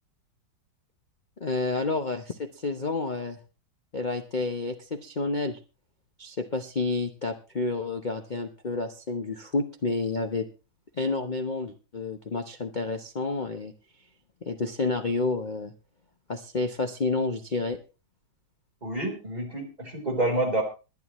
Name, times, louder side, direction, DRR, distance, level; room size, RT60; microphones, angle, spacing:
voice 1, 1.4-3.4 3.9-5.6 6.2-10.5 10.9-13.7 14.4-15.7 16.3-17.8, left 3 dB, 40° left, 7 dB, 0.6 m, -30 dB
voice 2, 18.8-20.6, right 1 dB, 20° right, 1 dB, 4.1 m, -28 dB
22.5 x 9.8 x 3.1 m, 0.32 s
omnidirectional pair, 2.2 m